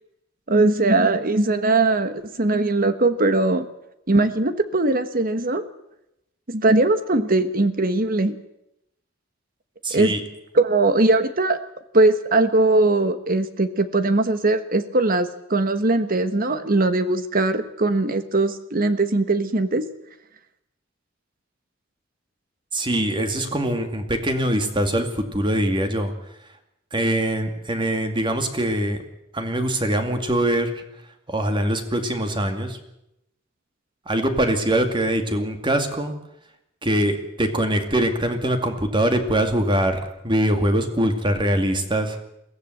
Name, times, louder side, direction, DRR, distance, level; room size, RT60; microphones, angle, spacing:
voice 1, 0.5-3.6 4.1-5.6 6.5-8.3 9.9-10.1 10.5-11.6 11.9-19.9, right 2 dB, 45° right, 11 dB, 1.3 m, -20 dB
voice 2, 9.8-10.2 22.7-26.1 26.9-29.0 29.3-30.8 31.3-32.8 34.1-36.1 36.8-42.2, right 1 dB, 25° right, 6 dB, 2.3 m, -23 dB
22.5 x 16.0 x 7.9 m, 0.84 s
head